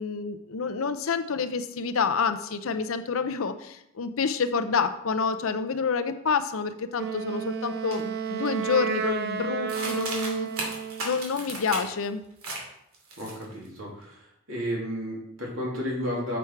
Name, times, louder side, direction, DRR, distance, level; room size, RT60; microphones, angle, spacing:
voice 1, 0.0-10.7 11.0-12.2, left 5 dB, 75° left, 10 dB, 0.6 m, -28 dB
Wind instrument woodwind instrument, 7.0-11.2, right 6 dB, 50° right, 0.5 m, -32 dB
sound 1, 7.9-8.0 8.4-8.9 9.7-12.0 12.4-12.7 12.9-13.7, right 2 dB, 85° right, 2.5 m, -35 dB
voice 2, 13.2-14.2 14.5-16.4, equal, 70° right, -3 dB, 2.8 m, -32 dB
7.1 x 6.2 x 4.5 m, 0.79 s
head